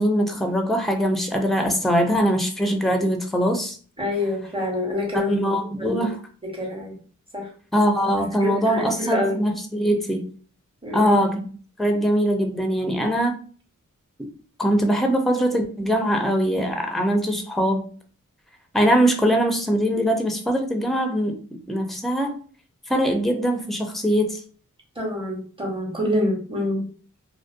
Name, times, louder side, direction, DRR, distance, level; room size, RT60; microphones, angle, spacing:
voice 1, 0.0-3.8 5.1-6.2 7.7-10.2 10.9-11.5 11.8-13.4 14.6-17.9 18.7-21.3 21.7-22.4 22.9-24.4, equal, ahead, 4 dB, 0.5 m, -22 dB
voice 2, 4.0-5.4 5.8-6.1 6.4-7.0 7.3-7.5 8.4-9.4 10.8-11.2 25.0-26.9, left 1 dB, 15° right, -1 dB, 1.1 m, -26 dB
2.4 x 2.1 x 2.5 m, 0.42 s
cardioid pair, 45°, 31 cm